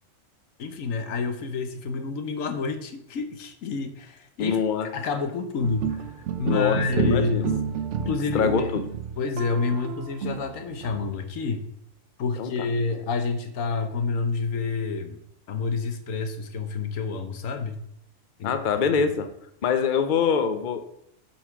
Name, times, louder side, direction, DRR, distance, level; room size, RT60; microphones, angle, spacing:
voice 1, 0.6-4.6 4.9-6.1 6.4-7.5 8.0-8.7 9.2-11.7 12.2-15.2 15.5-17.8 18.4-18.8, left 4 dB, 80° left, 8 dB, 1.2 m, -28 dB
voice 2, 4.4-4.9 6.4-7.6 8.0-8.8 12.4-12.5 18.4-19.3 19.6-20.8, left 6 dB, 45° left, 8 dB, 0.7 m, -24 dB
sound 1, 5.6-11.1, right 7 dB, 70° right, 0.9 m, -30 dB
7.8 x 4.3 x 5.8 m, 0.75 s
omnidirectional pair, 1.3 m